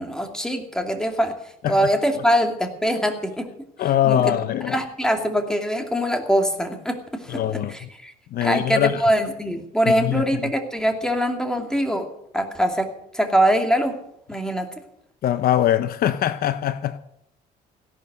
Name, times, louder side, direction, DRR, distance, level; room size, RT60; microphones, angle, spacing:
voice 1, 0.0-1.4 1.7-3.5 4.0-4.3 4.7-7.4 7.7-8.1 8.4-12.1 12.3-14.0 14.3-14.7, equal, 5° left, 2.5 m, -23 dB
voice 2, 3.8-4.8 7.3-7.9 8.3-9.0 9.9-10.5 15.2-17.0, left 11 dB, 60° left, 0.8 m, -22 dB
17.0 x 11.0 x 6.7 m
cardioid pair, 110°, 17 cm